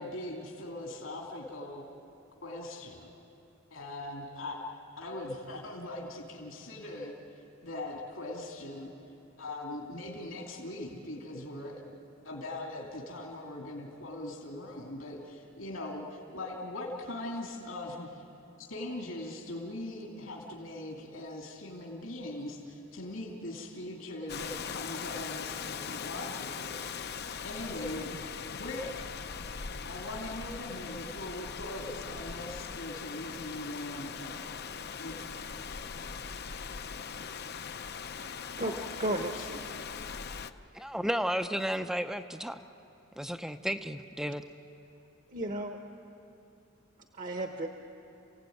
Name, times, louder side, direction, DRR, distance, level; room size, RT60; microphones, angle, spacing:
voice 1, 0.0-1.9 2.4-3.1 3.7-4.6 5.0-7.1 7.6-8.9 9.4-12.0 12.2-18.2 18.6-26.8 27.4-28.2 28.5-29.1 29.8-34.4 35.0-35.2 38.6-38.7 39.1-39.5, left 1 dB, 75° left, 0 dB, 2.7 m, -40 dB
Rain, 24.3-40.5, left 6 dB, 55° left, 0.7 m, -40 dB
voice 2, 39.0-39.6 45.3-45.8 47.1-47.7, right 2 dB, 40° right, 5 dB, 1.1 m, -33 dB
voice 3, 40.7-42.6 43.2-44.4, equal, 5° right, 8 dB, 0.6 m, -33 dB
29.5 x 16.5 x 9.4 m, 2.8 s
head